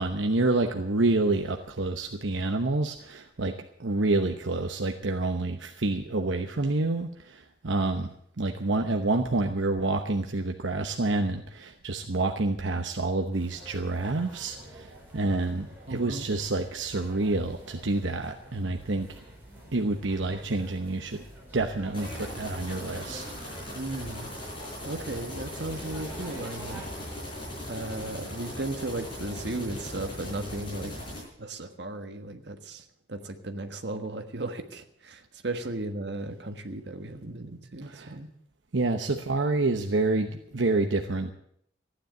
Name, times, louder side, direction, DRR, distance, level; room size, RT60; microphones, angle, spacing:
voice 1, 0.0-8.1 8.4-19.2 19.7-21.2 21.5-23.3 23.5-23.6 37.8-38.1 38.7-41.3, right 2 dB, 80° right, 4 dB, 1.0 m, -28 dB
sound 1, 13.3-26.9, right 1 dB, 10° right, 5.3 m, -47 dB
voice 2, 15.9-16.3 23.7-24.3 24.8-26.8 27.7-30.9 31.4-38.3, right 2 dB, 65° right, 6 dB, 1.5 m, -36 dB
sound 2, 21.9-31.2, left 1 dB, 25° left, 7.8 m, -39 dB
15.0 x 10.0 x 7.8 m, 0.70 s
head